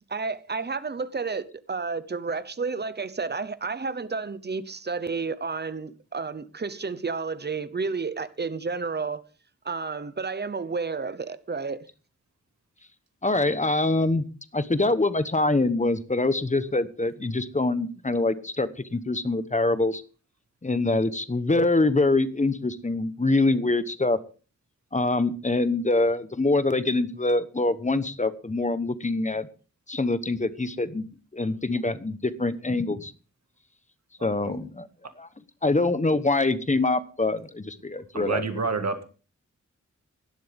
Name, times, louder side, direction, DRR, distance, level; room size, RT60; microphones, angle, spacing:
voice 1, 0.1-9.3 9.6-11.9, right 4 dB, 35° right, 0.9 m, -31 dB
voice 2, 13.2-14.2 14.5-20.0 20.6-24.2 24.9-29.5 29.9-31.1 31.3-33.1 34.2-34.9 35.2-35.3 35.6-38.4, left 2 dB, 25° left, 1.0 m, -24 dB
voice 3, 38.1-39.0, right 4 dB, 65° right, 1.8 m, -28 dB
17.0 x 12.0 x 3.5 m
wide cardioid pair, 95°, 29 cm